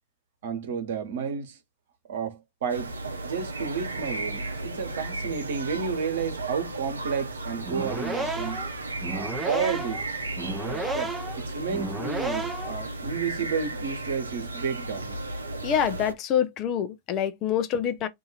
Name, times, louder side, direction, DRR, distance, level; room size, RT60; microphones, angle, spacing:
voice 1, 0.4-1.6 2.1-2.9 3.2-8.6 9.1-10.0 10.6-11.1 11.4-15.2, right 6 dB, 65° right, 1.1 m, -31 dB
sound 1, 2.7-16.1, right 2 dB, 90° right, 0.6 m, -35 dB
sound 2, 7.6-12.8, right 2 dB, 5° right, 0.6 m, -33 dB
voice 2, 15.6-18.1, left 9 dB, 40° left, 0.6 m, -26 dB
2.8 x 2.7 x 4.2 m
figure-of-eight pair, 100°, 0 cm